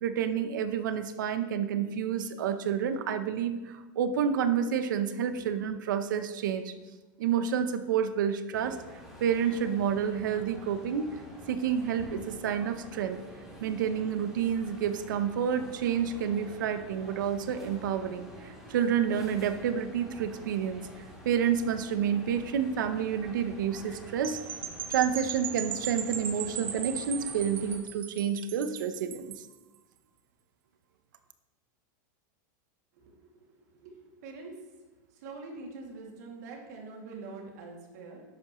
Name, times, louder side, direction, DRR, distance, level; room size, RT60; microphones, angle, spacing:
voice 1, 0.0-6.7 7.2-8.8 9.2-11.2 11.5-13.2 13.6-24.4 24.9-29.4, right 8 dB, 90° right, 10 dB, 0.8 m, -29 dB
sound 1, 8.5-27.8, equal, 5° right, 2.2 m, -48 dB
sound 2, 24.2-29.5, right 8 dB, 20° right, 0.4 m, -38 dB
voice 2, 33.0-34.6 35.1-38.2, right 3 dB, 60° right, 0 dB, 2.4 m, -45 dB
11.5 x 8.6 x 3.1 m, 1.2 s
supercardioid pair, 175°, 10 cm